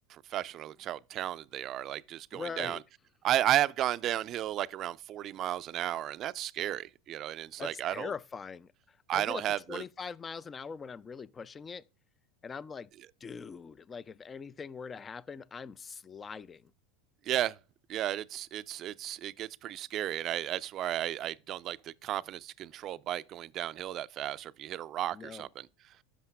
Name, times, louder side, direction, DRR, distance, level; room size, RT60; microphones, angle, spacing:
voice 1, 0.1-2.8 3.2-8.1 9.1-9.8 17.2-17.6 17.9-25.7, right 12 dB, 45° right, 0.4 m, -33 dB
voice 2, 2.3-2.8 7.6-11.8 12.4-12.9 13.2-16.7 25.1-25.5, left 5 dB, 25° left, 0.4 m, -42 dB
12.5 x 5.7 x 2.3 m
supercardioid pair, 110°, 0 cm